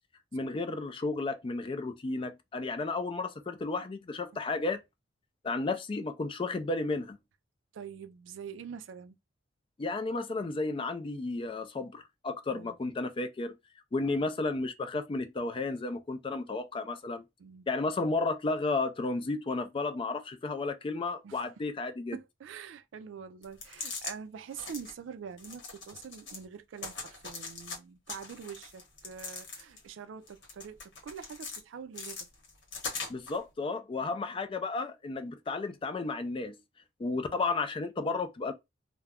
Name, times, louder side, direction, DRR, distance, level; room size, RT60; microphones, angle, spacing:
voice 1, 0.3-4.8 5.4-7.2 9.8-13.5 13.9-17.2 17.7-22.2 33.1-36.6 37.0-38.5, left 3 dB, 30° left, 0.3 m, -33 dB
voice 2, 7.7-9.2 12.5-12.8 14.1-14.3 17.4-17.7 21.2-21.5 22.1-32.3 34.0-34.1 37.1-37.2, right 7 dB, 85° right, 0.4 m, -45 dB
sound 1, 23.4-24.1 24.5-24.9 25.4-26.4 26.8-27.8 28.1-29.9 30.3-31.6 31.9-33.4, left 4 dB, 70° left, 0.9 m, -41 dB
2.3 x 2.1 x 3.4 m
head